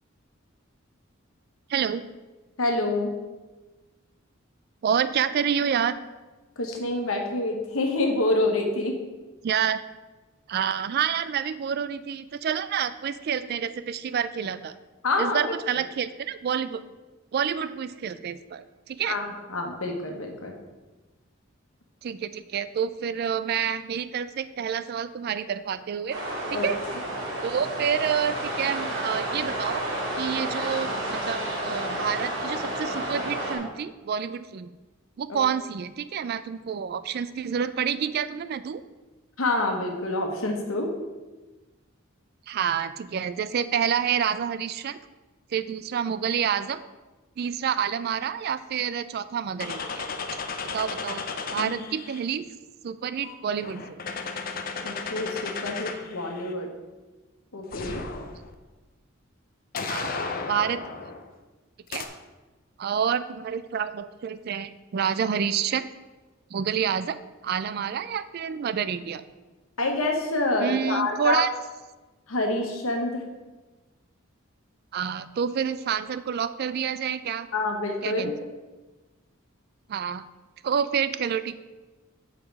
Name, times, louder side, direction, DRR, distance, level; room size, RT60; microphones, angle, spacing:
voice 1, 1.7-2.0 4.8-5.9 9.4-9.8 10.5-14.7 15.2-16.8 17.3-19.2 22.0-26.2 26.5-26.8 27.4-29.9 30.1-31.4 31.6-34.7 35.2-38.8 42.5-45.0 45.5-46.8 47.4-50.1 50.6-51.3 51.5-52.5 52.8-53.8 59.9-60.1 60.5-60.8 61.9-62.1 62.8-65.9 66.5-67.2 67.4-69.2 70.6-71.5 74.9-77.5 78.0-78.3 79.9-80.2 80.6-81.6, right 7 dB, 50° right, 14 dB, 0.3 m, -28 dB
voice 2, 2.6-3.1 6.6-8.9 15.0-15.4 19.1-20.5 26.5-26.7 35.3-35.4 39.4-40.9 51.6-51.7 54.8-56.7 57.5-58.1 69.8-71.4 72.3-73.2 77.5-78.3, left 2 dB, 90° left, 2 dB, 1.3 m, -27 dB
sound 1, 26.1-33.6, right 1 dB, 75° right, 2.6 m, -31 dB
sound 2, 49.6-52.2 53.2-56.5 57.7-58.5 59.7-61.3 61.9-62.1, left 4 dB, 45° left, 0.6 m, -34 dB
7.3 x 5.0 x 4.6 m, 1.2 s
head